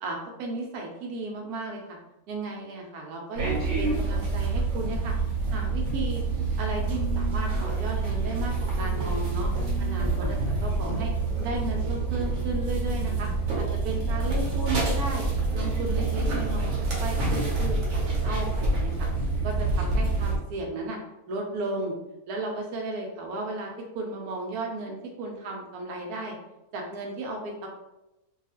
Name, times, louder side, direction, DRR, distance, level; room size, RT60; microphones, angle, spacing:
voice 1, 0.0-2.0 2.3-5.1 5.5-6.2 6.6-9.5 9.8-11.1 11.4-13.3 13.6-15.2 15.5-19.1 19.4-21.0 21.3-21.9 22.3-23.7 23.9-26.3 26.7-27.7, right 2 dB, 85° right, 1 dB, 1.1 m, -34 dB
sound 1, 3.4-20.4, right 3 dB, 60° right, 1.1 m, -27 dB
sound 2, 4.6-5.3 6.8-7.4 9.5-10.1, right 1 dB, 85° left, 1.1 m, -40 dB
2.8 x 2.3 x 2.8 m, 0.93 s
omnidirectional pair, 1.6 m